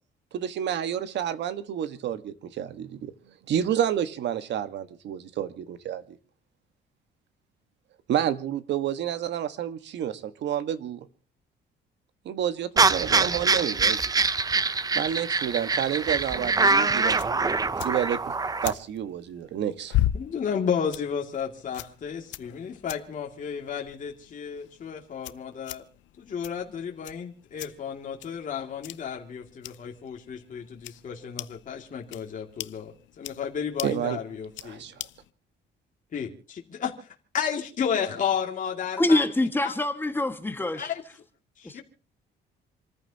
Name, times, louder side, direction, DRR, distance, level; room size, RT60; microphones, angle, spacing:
voice 1, 0.3-3.1 3.5-6.2 8.1-11.1 12.2-14.0 14.9-17.3 17.8-18.2 18.6-20.0 33.8-34.2 34.6-34.9, right 10 dB, 70° right, 1.5 m, -29 dB
sound 1, 12.8-18.7, right 4 dB, 20° right, 0.7 m, -24 dB
sound 2, 16.1-35.3, left 14 dB, 85° left, 0.7 m, -38 dB
voice 2, 20.1-25.9 26.2-34.8 36.1-39.3 39.6-39.7 40.8-41.0 41.6-41.8, left 7 dB, 45° left, 2.4 m, -32 dB
voice 3, 39.0-40.9 41.6-41.7, left 2 dB, 10° left, 1.7 m, -25 dB
28.0 x 14.5 x 2.9 m
cardioid pair, 130°, 19 cm